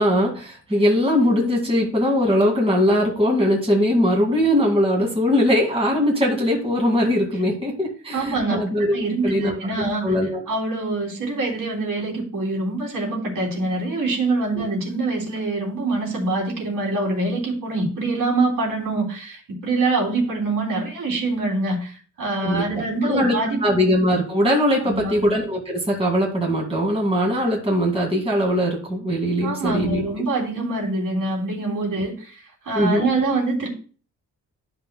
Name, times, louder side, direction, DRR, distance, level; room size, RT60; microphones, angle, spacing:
voice 1, 0.0-9.5 10.0-10.4 14.5-14.7 22.4-23.4 23.6-30.0 32.7-33.1, equal, 15° right, -2 dB, 2.1 m, -21 dB
voice 2, 8.1-8.6 8.9-10.1 10.5-23.8 24.8-25.3 29.4-32.4 32.6-33.7, right 2 dB, 75° right, -1 dB, 3.1 m, -25 dB
12.5 x 5.7 x 2.2 m, 0.39 s
wide cardioid pair, 135°, 33 cm